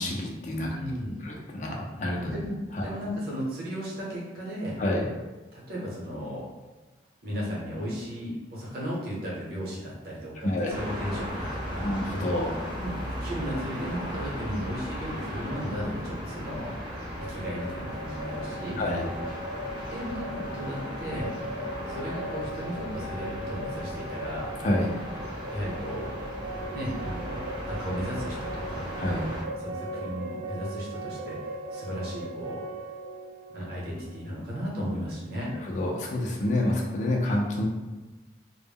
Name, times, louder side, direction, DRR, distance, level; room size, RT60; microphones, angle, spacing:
voice 1, 0.0-0.7 1.2-2.3 2.7-2.8 4.8-5.1 10.4-10.7 11.8-12.6 18.8-19.1 24.6-24.9 29.0-29.3 35.5-37.6, left 1 dB, 40° left, -1 dB, 0.3 m, -28 dB
voice 2, 0.6-1.2 2.3-4.8 5.5-6.4 7.2-12.0 12.8-12.9 13.2-16.8 17.2-18.8 19.9-21.3 21.9-24.5 25.5-26.2 26.7-28.9 29.6-32.6 33.5-35.5, equal, 55° right, -5 dB, 0.8 m, -35 dB
sound 1, 10.7-29.4, equal, 25° right, 0.6 m, -37 dB
sound 2, 16.9-34.7, right 1 dB, 80° right, 0.4 m, -39 dB
2.1 x 2.0 x 3.4 m, 1.2 s
head